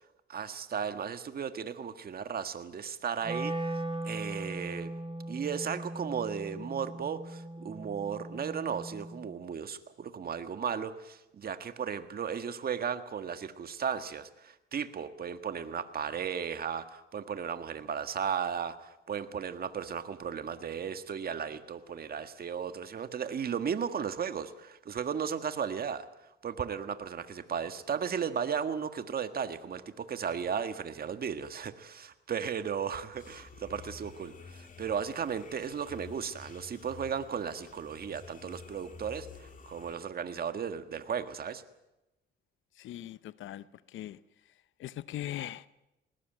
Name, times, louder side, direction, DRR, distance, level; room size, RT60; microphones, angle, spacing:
voice 1, 0.3-4.9 5.3-26.1 26.4-41.6, right 7 dB, 50° right, 1.6 m, -35 dB
Wind instrument woodwind instrument, 3.2-9.3, right 2 dB, 25° right, 3.0 m, -39 dB
sound 1, 33.1-39.9, left 5 dB, 40° left, 2.9 m, -51 dB
voice 2, 42.7-44.2 44.8-45.7, left 13 dB, 75° left, 0.8 m, -40 dB
20.0 x 19.0 x 9.2 m
cardioid pair, 90°, 20 cm